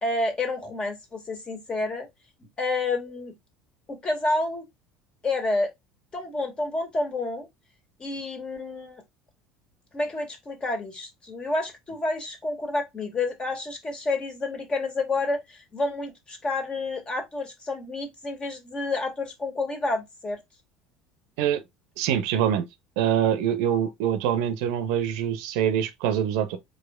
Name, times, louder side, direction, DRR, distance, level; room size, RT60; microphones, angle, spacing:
voice 1, 0.0-2.1 2.6-3.3 3.9-4.7 5.2-5.7 6.1-7.5 8.0-9.0 9.9-20.4, left 2 dB, 25° left, 2.0 m, -29 dB
voice 2, 22.0-22.7 23.0-26.6, right 9 dB, 60° right, 0.8 m, -24 dB
4.8 x 4.5 x 2.4 m
figure-of-eight pair, 65°, 4 cm